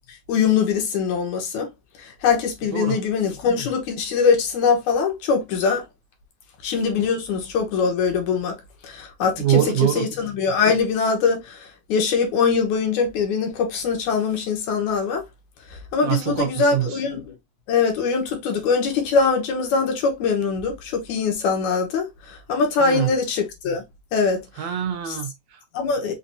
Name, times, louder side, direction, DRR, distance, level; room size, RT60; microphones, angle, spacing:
voice 1, 0.3-1.7 2.0-5.8 6.6-8.5 8.8-9.6 10.0-15.2 15.9-17.3 17.7-23.8 24.1-24.4 25.7-26.1, left 5 dB, 80° left, 2.5 m, -22 dB
voice 2, 9.4-10.1 16.0-17.0 22.8-23.1 24.6-25.6, right 12 dB, 75° right, 1.9 m, -24 dB
5.8 x 2.5 x 2.7 m
omnidirectional pair, 3.4 m